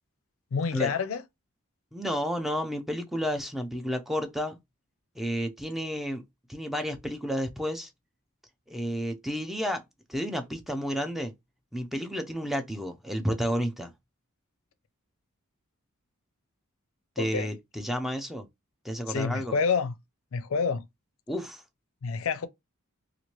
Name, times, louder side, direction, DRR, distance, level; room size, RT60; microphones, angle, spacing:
voice 1, 0.5-1.2 17.2-17.5 19.1-19.9 20.3-20.9 22.0-22.5, left 5 dB, 65° left, 0.4 m, -28 dB
voice 2, 1.9-4.6 5.2-6.2 6.5-7.9 8.7-9.8 10.1-11.3 11.7-13.9 17.2-18.5 18.8-19.6 21.3-21.6, equal, ahead, 0.3 m, -31 dB
3.0 x 2.5 x 2.9 m
head